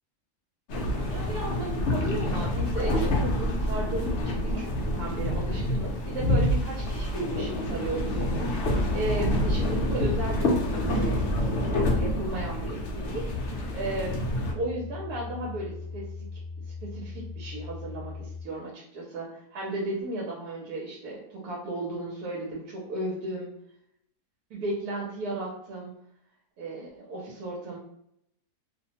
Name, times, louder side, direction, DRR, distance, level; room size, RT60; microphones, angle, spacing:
sound 1, 0.7-14.5, left 1 dB, 70° left, 0.7 m, -27 dB
voice 1, 1.1-16.1 16.8-23.5 24.5-25.9 26.6-27.8, right 2 dB, 75° right, -3 dB, 1.1 m, -35 dB
sound 2, 10.8-18.4, left 4 dB, 45° left, 1.1 m, -41 dB
2.7 x 2.1 x 2.8 m, 0.76 s
omnidirectional pair, 1.7 m